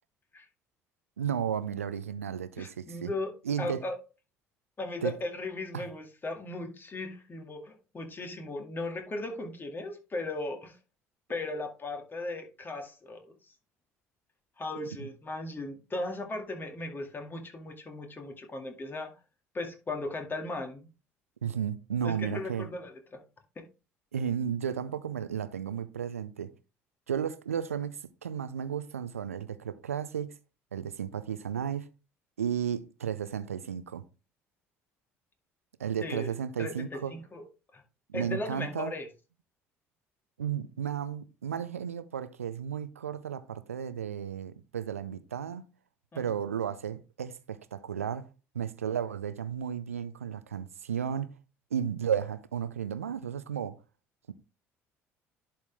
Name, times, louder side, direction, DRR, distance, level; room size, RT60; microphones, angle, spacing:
voice 1, 1.2-3.1 3.4-3.8 5.0-5.1 5.7-5.9 15.0-15.1 21.4-22.7 24.1-26.5 27.1-30.4 30.7-31.9 32.4-34.0 35.8-37.1 38.1-38.9 40.4-45.7 46.2-48.3 48.5-51.4 51.7-53.8, right 8 dB, 85° right, 0.5 m, -33 dB
voice 2, 2.6-3.3 3.6-4.0 4.8-10.8 11.3-13.3 14.6-19.1 19.5-20.9 22.0-23.2 23.6-23.7 36.0-36.3 36.6-37.4 37.7-37.8 38.1-39.1 46.1-46.2, left 2 dB, 30° left, 2.1 m, -37 dB
11.0 x 4.4 x 3.4 m
figure-of-eight pair, 55°, 7 cm